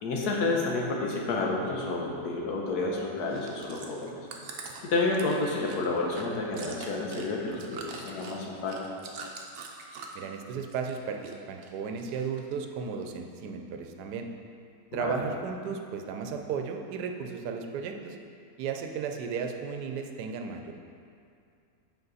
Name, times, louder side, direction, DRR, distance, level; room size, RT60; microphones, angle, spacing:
voice 1, 0.0-4.1 4.8-8.8 14.9-15.3, left 3 dB, 75° left, -1 dB, 1.4 m, -30 dB
Chewing mastication, 3.2-10.3 10.6-11.4 11.6-12.5 13.0-13.1, right 5 dB, 65° right, 1.0 m, -43 dB
voice 2, 10.1-14.3 14.9-18.2 18.6-20.7, right 6 dB, 90° right, 4 dB, 1.2 m, -34 dB
7.9 x 4.5 x 4.0 m, 2.4 s
omnidirectional pair, 1.7 m